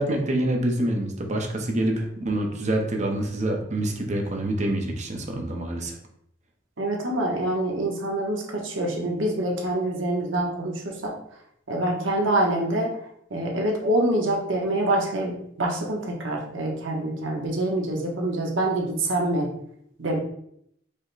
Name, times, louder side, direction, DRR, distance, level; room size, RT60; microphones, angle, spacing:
voice 1, 0.0-5.9, right 1 dB, 40° right, 2 dB, 0.7 m, -26 dB
voice 2, 6.8-11.1 11.7-12.9 13.3-19.5 20.0-20.2, right 1 dB, 85° right, 0 dB, 1.0 m, -26 dB
5.0 x 2.2 x 4.0 m, 0.71 s
head